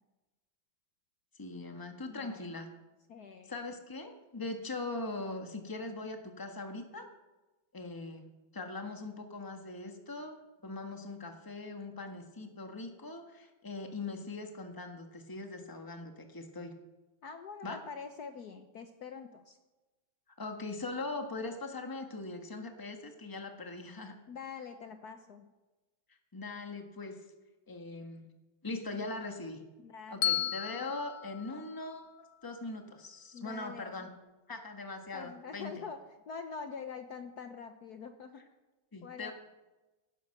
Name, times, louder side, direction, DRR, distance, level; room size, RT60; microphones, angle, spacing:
voice 1, 1.4-2.7 3.5-7.1 7.7-8.2 8.5-10.3 10.6-16.7 17.6-17.8 20.4-24.1 26.3-27.2 27.7-28.3 28.6-29.6 30.1-32.1 32.4-34.1 34.5-35.7 38.9-39.3, left 3 dB, 10° left, 4 dB, 1.4 m, -41 dB
voice 2, 2.1-2.5 3.1-3.5 17.2-19.6 24.3-25.5 29.8-30.9 31.4-31.7 33.3-34.1 35.1-36.0 36.3-38.4 39.0-39.3, left 5 dB, 60° left, 7 dB, 1.3 m, -45 dB
Bell, 30.2-32.4, left 11 dB, 80° left, 1.4 m, -35 dB
17.5 x 10.5 x 6.6 m, 1.1 s
omnidirectional pair, 2.1 m